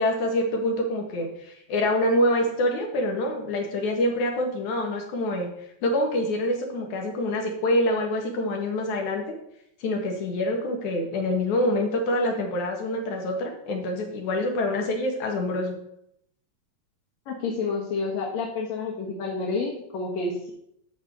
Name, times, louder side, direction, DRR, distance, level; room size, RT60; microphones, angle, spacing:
voice 1, 0.0-5.5 5.8-9.2 9.8-15.8, left 1 dB, 85° left, 2 dB, 3.2 m, -26 dB
voice 2, 17.3-20.5, left 4 dB, 65° left, -3 dB, 2.7 m, -29 dB
12.5 x 4.1 x 6.5 m, 0.75 s
omnidirectional pair, 3.4 m